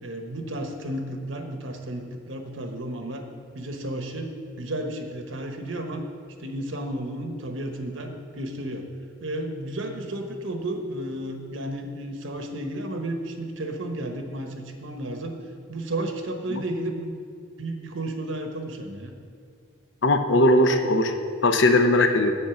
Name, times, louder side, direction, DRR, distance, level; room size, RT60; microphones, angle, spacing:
voice 1, 0.0-3.2 3.5-4.3 4.6-6.0 6.4-8.9 9.2-15.4 15.7-17.3 17.6-19.1, right 1 dB, 75° right, 5 dB, 1.0 m, -32 dB
voice 2, 20.0-21.1 21.4-22.4, left 1 dB, 70° left, 7 dB, 0.8 m, -19 dB
8.3 x 8.0 x 5.8 m, 2.2 s
head